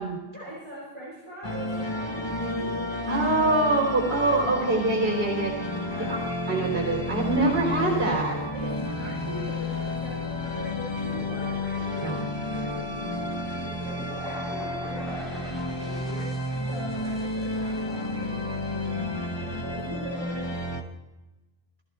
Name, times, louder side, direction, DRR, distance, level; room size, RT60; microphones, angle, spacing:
voice 1, 0.3-3.3 5.7-6.2 8.5-8.7 9.0-16.3 16.7-19.0 19.3-20.5, equal, 25° right, -8 dB, 7.0 m, -42 dB
sound 1, 1.4-20.8, left 1 dB, 25° left, 1.3 m, -31 dB
voice 2, 3.1-5.7 6.0-6.2 6.5-8.4 12.0-12.2, right 2 dB, 65° right, -1 dB, 3.8 m, -24 dB
sound 2, 11.1-18.1, equal, ahead, 4.2 m, -44 dB
20.0 x 14.0 x 3.2 m, 1.0 s
omnidirectional pair, 1.1 m